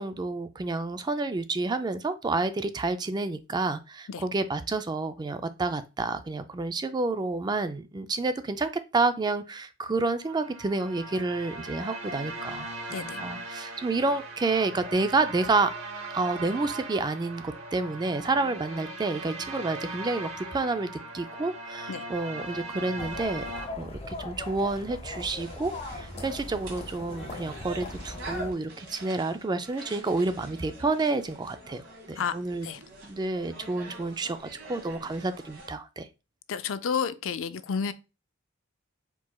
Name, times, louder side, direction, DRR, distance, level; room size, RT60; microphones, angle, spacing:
voice 1, 0.0-15.7 16.1-23.4 23.8-32.7 33.0-36.1, right 3 dB, 20° right, 0.3 m, -29 dB
sound 1, 10.1-23.7, right 2 dB, 85° right, 1.0 m, -39 dB
sound 2, 23.0-28.5, left 2 dB, 30° left, 0.8 m, -39 dB
sound 3, 25.2-35.7, right 2 dB, 65° right, 1.7 m, -45 dB
voice 2, 36.5-37.9, left 6 dB, 65° left, 0.4 m, -30 dB
4.6 x 4.2 x 2.2 m
head